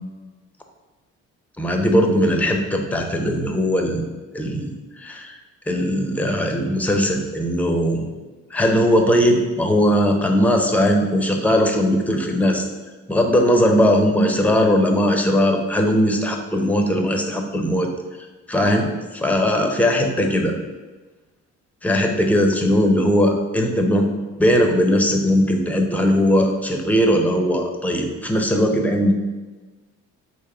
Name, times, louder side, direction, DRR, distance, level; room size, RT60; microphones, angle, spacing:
voice 1, 1.6-4.0 4.3-5.3 5.7-8.0 8.5-12.7 13.1-17.9 18.5-18.9 19.1-20.5 21.8-24.1 24.4-29.1, equal, 5° left, 3 dB, 0.6 m, -19 dB
3.4 x 3.1 x 4.7 m, 1.2 s
cardioid pair, 90°, 30 cm